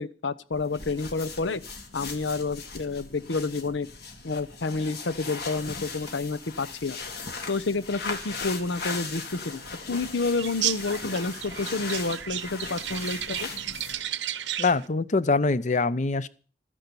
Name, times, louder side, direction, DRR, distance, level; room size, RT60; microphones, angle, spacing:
voice 1, 0.0-1.6 1.9-3.9 4.2-7.0 7.5-9.6 9.9-13.5, left 3 dB, 85° left, 0.8 m, -29 dB
sound 1, 0.5-14.1, left 4 dB, 60° left, 2.3 m, -38 dB
sound 2, 10.4-14.9, right 11 dB, 80° right, 0.9 m, -33 dB
voice 2, 14.6-16.3, left 3 dB, 40° left, 0.7 m, -24 dB
13.0 x 10.0 x 7.0 m
head